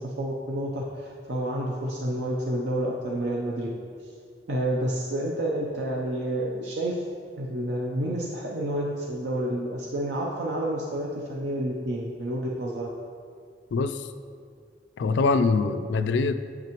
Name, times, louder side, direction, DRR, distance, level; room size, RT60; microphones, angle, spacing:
voice 1, 0.0-3.7 4.5-7.0 7.4-12.9, right 1 dB, 85° right, -3 dB, 0.6 m, -29 dB
voice 2, 15.0-16.4, left 4 dB, 85° left, 11 dB, 0.3 m, -23 dB
7.6 x 5.9 x 3.0 m, 2.2 s
head